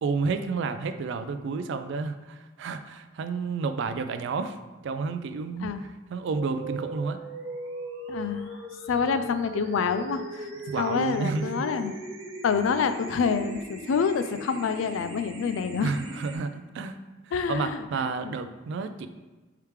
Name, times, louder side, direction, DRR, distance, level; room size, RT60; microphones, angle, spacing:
voice 1, 0.0-4.6 4.8-5.7 6.1-7.2 10.7-11.7 15.8-17.0 17.5-19.1, right 4 dB, 65° right, 10 dB, 0.3 m, -30 dB
sound 1, 6.4-16.4, right 1 dB, 80° right, 0.7 m, -39 dB
voice 2, 8.1-8.5 8.9-10.5 10.8-11.9 12.4-15.9 17.3-18.3, left 6 dB, 85° left, 10 dB, 0.3 m, -27 dB
4.6 x 3.4 x 3.2 m, 1.2 s
head